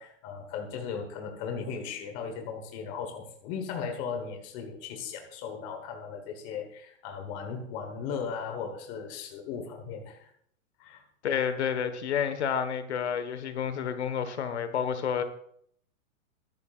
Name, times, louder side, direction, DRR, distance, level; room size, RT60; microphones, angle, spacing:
voice 1, 0.0-10.3 10.8-11.0, left 6 dB, 20° left, 4 dB, 1.3 m, -37 dB
voice 2, 11.2-15.2, left 7 dB, 55° left, 10 dB, 1.4 m, -30 dB
21.5 x 11.5 x 2.5 m, 0.65 s
hypercardioid pair, 170°, 41 cm